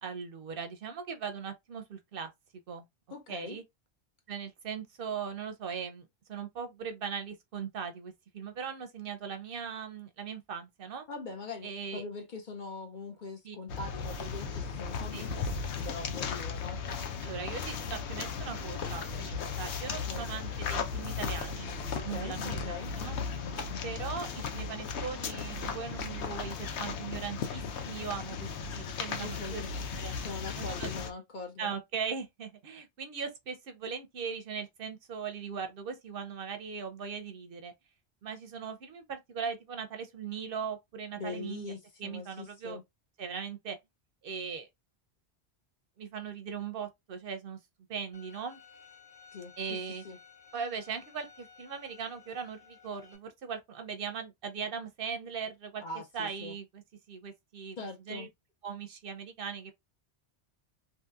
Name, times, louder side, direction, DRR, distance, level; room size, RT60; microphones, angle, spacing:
voice 1, 0.0-2.3 2.7-2.8 3.3-3.6 4.3-11.0 11.6-12.0 13.4-13.6 15.1-15.3 17.2-21.7 22.1-23.2 23.8-28.5 28.8-29.6 30.0-30.2 30.6-30.9 31.6-37.7 38.2-42.8 43.2-43.8 44.2-44.7 46.0-47.6 47.9-48.6 49.6-50.0 50.5-55.8 56.1-56.8 57.1-57.8 58.1-58.3 58.6-59.7, right 6 dB, 65° right, 0.7 m, -39 dB
voice 2, 3.1-3.6 11.1-16.8 20.0-20.3 21.9-23.0 29.2-29.7 30.2-31.7 41.2-42.8 49.3-50.2 55.8-56.5 57.8-58.3, left 3 dB, 55° left, 0.7 m, -42 dB
sound 1, 13.7-31.1, left 5 dB, 80° left, 0.9 m, -36 dB
Bowed string instrument, 48.1-53.2, left 6 dB, 30° left, 1.1 m, -56 dB
2.8 x 2.7 x 2.3 m
omnidirectional pair, 1.1 m